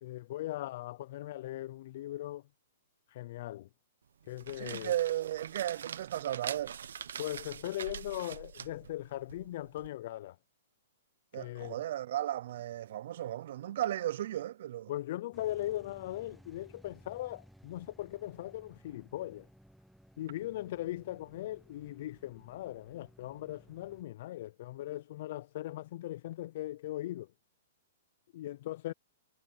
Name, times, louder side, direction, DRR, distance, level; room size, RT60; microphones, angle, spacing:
voice 1, 0.0-2.5 3.1-3.7 4.3-4.9 7.2-10.4 11.4-11.8 14.9-19.5 20.2-27.3 28.3-28.9, left 14 dB, 40° left, 0.4 m, -39 dB
sound 1, 4.2-9.9, right 8 dB, 85° right, 0.8 m, -44 dB
voice 2, 4.6-6.8 11.3-14.9, right 12 dB, 50° right, 0.4 m, -35 dB
raw lawnmowermaybe, 15.3-24.0, equal, ahead, 0.8 m, -59 dB
hypercardioid pair, 170°, 0 cm